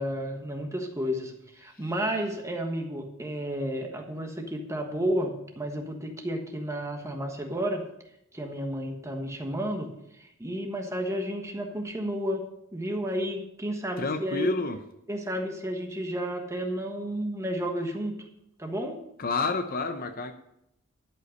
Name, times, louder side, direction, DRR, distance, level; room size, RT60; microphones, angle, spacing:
voice 1, 0.0-7.8 8.3-9.9 10.2-12.4 12.7-14.5 15.1-18.2 18.6-19.0, equal, 15° right, 3 dB, 1.3 m, -32 dB
voice 2, 14.0-14.8 19.2-20.3, left 3 dB, 45° left, 8 dB, 0.7 m, -29 dB
12.5 x 5.5 x 6.4 m, 0.81 s
head